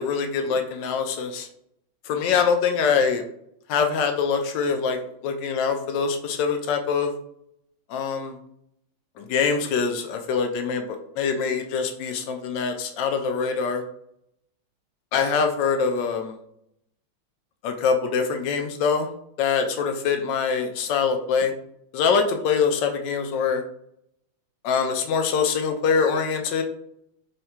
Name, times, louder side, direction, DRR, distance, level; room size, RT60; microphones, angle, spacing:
voice 1, 0.0-1.5 2.0-3.2 3.7-7.1 7.9-8.4 9.2-13.8 15.1-16.4 17.6-19.1 19.4-21.5 21.9-23.6 24.6-26.6, left 6 dB, 75° left, 5 dB, 1.0 m, -24 dB
3.7 x 2.2 x 4.2 m, 0.73 s
omnidirectional pair, 2.3 m